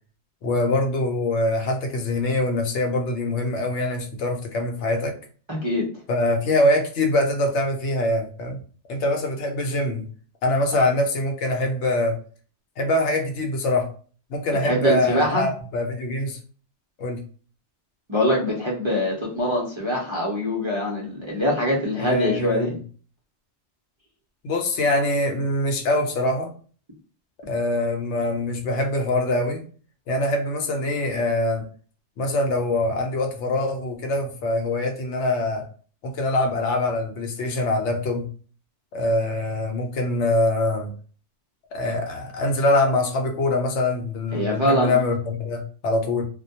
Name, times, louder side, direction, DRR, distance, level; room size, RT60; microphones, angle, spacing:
voice 1, 0.4-5.1 6.1-8.6 8.9-10.1 10.4-12.2 12.8-13.9 14.3-16.4 17.0-17.2 22.0-22.8 24.4-26.5 27.5-29.6 30.1-31.6 32.2-35.6 36.0-38.3 38.9-40.9 41.7-46.2, left 1 dB, 80° left, 3 dB, 0.9 m, -24 dB
voice 2, 5.5-5.8 14.6-15.5 18.1-22.8 44.3-44.9, equal, 35° right, -5 dB, 0.5 m, -23 dB
2.2 x 2.1 x 2.7 m, 0.40 s
omnidirectional pair, 1.2 m